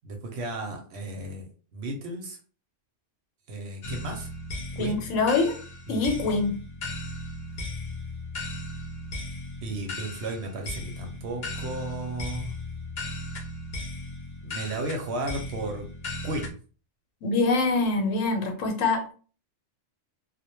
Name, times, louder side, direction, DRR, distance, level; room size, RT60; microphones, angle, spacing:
voice 1, 0.0-2.4 3.5-4.3 4.8-5.0 5.9-6.0 9.6-12.5 14.4-15.9 16.2-16.6, right 2 dB, 65° right, 0.8 m, -34 dB
sound 1, 3.8-16.5, left 1 dB, 55° left, 0.5 m, -37 dB
voice 2, 4.8-5.5 5.9-6.5 17.2-19.1, left 3 dB, 85° left, 1.1 m, -24 dB
2.2 x 2.1 x 2.9 m
omnidirectional pair, 1.3 m